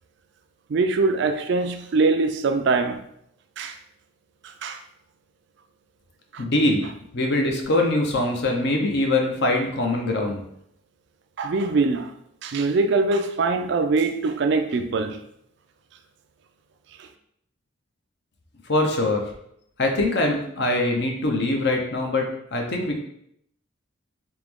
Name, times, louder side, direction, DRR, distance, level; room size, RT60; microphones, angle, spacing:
voice 1, 0.7-3.0 3.6-3.8 4.4-4.8 6.3-6.4 11.4-12.1 12.4-15.2 17.0-17.1, right 3 dB, 55° right, 7 dB, 0.4 m, -23 dB
voice 2, 6.4-6.8 7.1-10.4 18.7-19.2 19.8-23.0, left 2 dB, 55° left, 2 dB, 0.7 m, -23 dB
3.6 x 2.9 x 3.5 m, 0.72 s
head